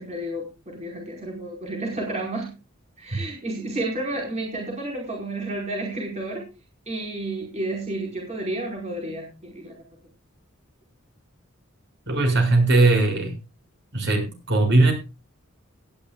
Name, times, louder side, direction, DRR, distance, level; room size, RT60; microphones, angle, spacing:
voice 1, 0.0-2.5 3.0-6.5 6.9-9.8, right 2 dB, 35° right, -2 dB, 4.8 m, -31 dB
voice 2, 12.1-13.4 13.9-14.9, right 2 dB, 60° right, 4 dB, 6.4 m, -19 dB
19.0 x 12.5 x 2.4 m, 0.29 s
head